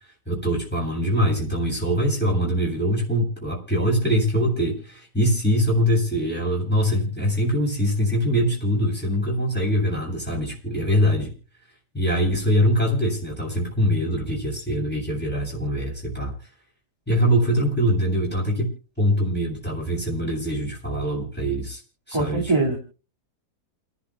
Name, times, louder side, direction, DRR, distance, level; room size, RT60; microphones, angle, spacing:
voice 1, 0.3-11.3 11.9-16.3 17.1-18.7 19.0-21.8 22.1-22.5, equal, 5° left, -3 dB, 8.0 m, -23 dB
voice 2, 22.1-22.8, right 3 dB, 15° right, 0 dB, 2.2 m, -22 dB
30.0 x 11.5 x 2.4 m, 0.39 s
omnidirectional pair, 1.8 m